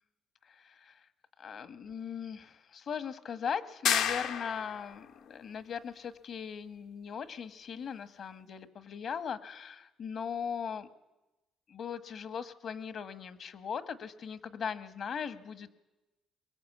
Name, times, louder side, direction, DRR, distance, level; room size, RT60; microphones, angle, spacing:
voice 1, 0.5-1.0 1.4-10.9 11.7-15.7, left 7 dB, 60° left, 12 dB, 1.3 m, -39 dB
sound 1, 3.9-4.9, left 9 dB, 85° left, 1.3 m, -30 dB
22.5 x 20.0 x 8.4 m, 1.1 s
cardioid pair, 100°, 0 cm